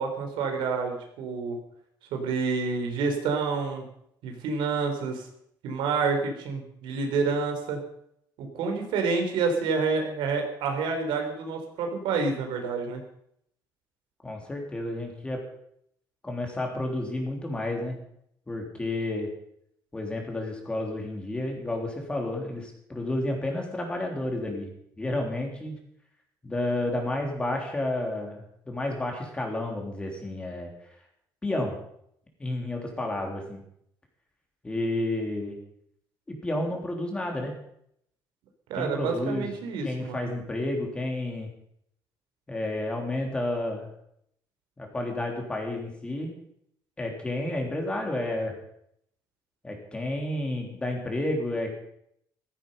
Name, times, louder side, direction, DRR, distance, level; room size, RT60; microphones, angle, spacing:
voice 1, 0.0-1.6 2.1-3.9 4.2-5.2 5.6-7.8 8.4-13.0 38.7-40.3, right 4 dB, 90° right, 4 dB, 4.2 m, -28 dB
voice 2, 14.2-15.4 16.2-18.0 18.5-19.3 19.9-24.7 25.0-25.8 26.4-30.7 31.4-31.8 32.4-33.6 34.6-35.6 36.3-37.5 38.7-39.5 39.8-41.5 42.5-43.9 44.8-46.3 47.0-48.5 49.6-51.8, left 1 dB, 15° left, 1 dB, 3.5 m, -31 dB
15.5 x 15.0 x 5.6 m, 0.71 s
cardioid pair, 160°, 8 cm